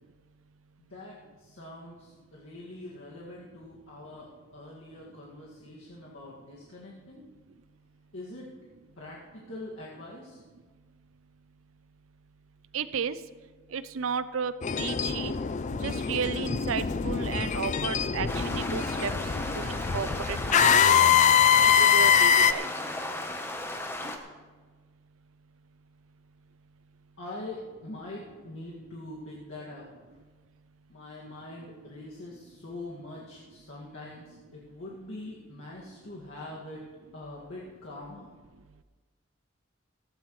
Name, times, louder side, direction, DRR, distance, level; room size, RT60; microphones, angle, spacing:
voice 1, 0.8-7.2 8.1-8.5 9.0-10.4 27.2-29.9 30.9-36.8 37.1-38.3, left 2 dB, 75° left, -6 dB, 2.0 m, -43 dB
voice 2, 12.7-13.2 13.7-15.3 15.8-19.1 19.5-21.1 21.6-22.7 24.0-24.2, right 6 dB, 85° right, 14 dB, 0.5 m, -33 dB
sound 1, 14.6-22.5, left 7 dB, 35° left, 0.4 m, -23 dB
sound 2, 18.3-24.2, left 1 dB, 10° left, 0.9 m, -36 dB
16.0 x 15.5 x 3.1 m, 1.4 s
head